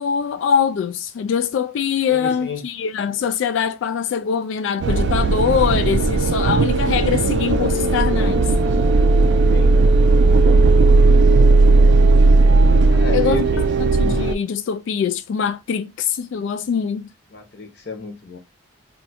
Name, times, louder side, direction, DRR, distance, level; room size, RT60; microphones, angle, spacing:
voice 1, 0.0-8.5 13.1-17.1, left 7 dB, 75° left, 0.3 m, -23 dB
voice 2, 2.1-2.6 9.5-9.7 12.9-13.7 17.3-18.4, left 3 dB, 55° left, 0.8 m, -32 dB
sound 1, 4.8-14.3, right 3 dB, 65° right, 0.3 m, -15 dB
2.6 x 2.3 x 4.1 m
head